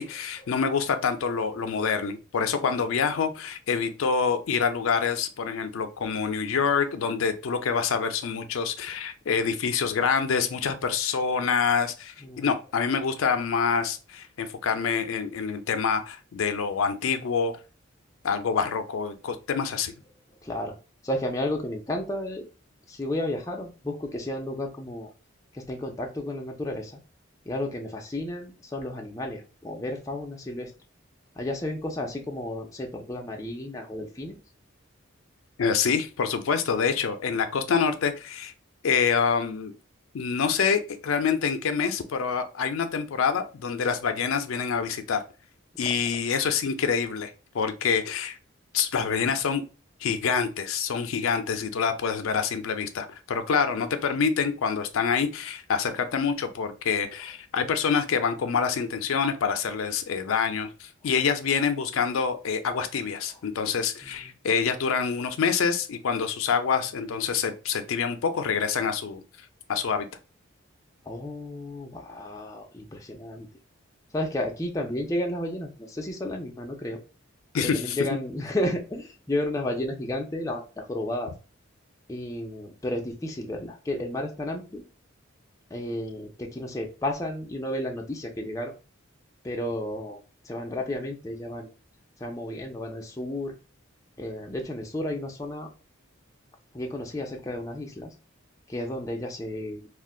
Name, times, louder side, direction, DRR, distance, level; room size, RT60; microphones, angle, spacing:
voice 1, 0.0-17.6 18.2-19.9 35.6-38.5 38.8-39.7 40.1-45.2 45.8-48.4 48.7-49.6 50.0-69.2 69.7-70.1 77.5-78.0, left 6 dB, 80° left, 8 dB, 0.4 m, -26 dB
voice 2, 20.4-20.8 21.0-22.4 22.9-25.1 25.5-27.0 27.5-30.7 31.4-34.4 64.0-64.3 71.1-73.5 74.1-77.0 77.6-81.3 82.1-84.8 85.7-88.7 89.4-90.2 90.4-91.7 92.2-93.5 94.2-95.7 96.7-98.1 98.7-99.8, left 1 dB, 15° left, 1 dB, 0.4 m, -32 dB
2.4 x 2.2 x 3.6 m, 0.33 s
head